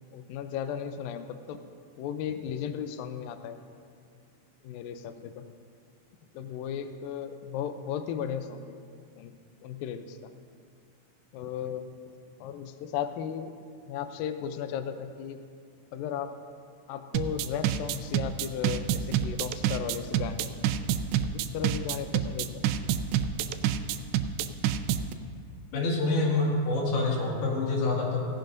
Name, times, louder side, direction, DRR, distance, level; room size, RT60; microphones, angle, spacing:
voice 1, 0.1-1.6 2.0-3.6 4.6-5.5 6.3-8.8 9.1-9.4 9.6-10.3 11.3-12.0 12.4-13.6 13.9-15.4 15.9-16.4 16.9-20.6 21.3-22.6, left 8 dB, 90° left, 9 dB, 2.0 m, -35 dB
sound 1, 17.1-25.1, right 9 dB, 90° right, 2.8 m, -28 dB
voice 2, 25.7-28.2, left 2 dB, 70° left, -3 dB, 4.1 m, -26 dB
17.5 x 16.0 x 2.6 m, 2.3 s
omnidirectional pair, 4.8 m